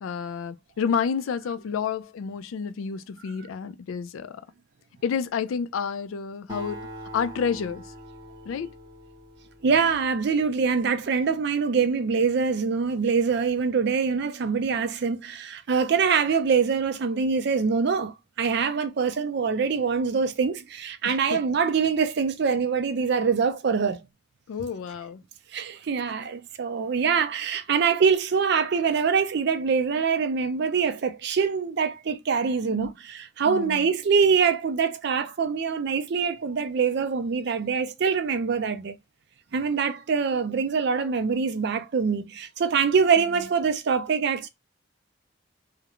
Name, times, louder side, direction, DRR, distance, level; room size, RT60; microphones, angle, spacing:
voice 1, 0.0-4.3 5.0-6.9 7.1-7.8 8.5-8.7 21.0-21.4 24.5-25.2 32.8-32.9 33.4-33.9, left 6 dB, 80° left, 0.3 m, -30 dB
Acoustic guitar, 6.5-10.3, right 1 dB, 20° right, 0.7 m, -43 dB
voice 2, 9.6-24.0 25.5-38.9 39.5-44.5, right 5 dB, 55° right, 0.4 m, -24 dB
2.4 x 2.1 x 2.9 m
head